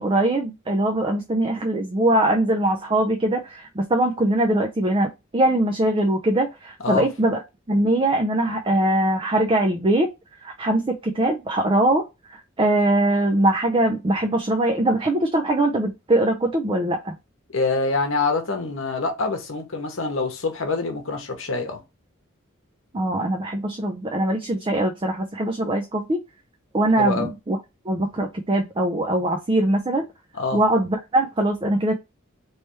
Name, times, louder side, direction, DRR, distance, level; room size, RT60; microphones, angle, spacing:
voice 1, 0.0-7.4 7.7-10.1 10.4-17.1 22.9-26.2 26.7-27.6 27.9-30.1 30.5-32.0, right 1 dB, 25° right, 0.4 m, -22 dB
voice 2, 17.5-21.8 27.0-27.3 30.3-30.6, left 3 dB, 70° left, 1.0 m, -25 dB
3.3 x 3.1 x 3.0 m
head